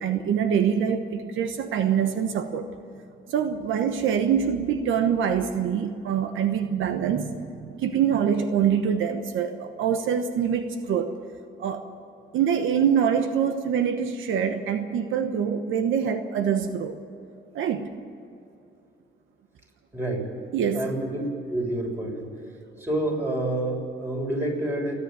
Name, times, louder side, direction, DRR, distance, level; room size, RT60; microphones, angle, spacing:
voice 1, 0.0-2.7 3.3-11.1 11.6-11.9 12.3-17.0 17.5-17.9 20.5-20.8, right 8 dB, 80° right, 8 dB, 1.1 m, -25 dB
voice 2, 19.9-20.3 20.7-21.2 21.5-22.2 22.8-24.9, right 1 dB, 10° right, 0 dB, 6.7 m, -28 dB
28.0 x 10.0 x 9.2 m, 2.6 s
cardioid pair, 90°, 20 cm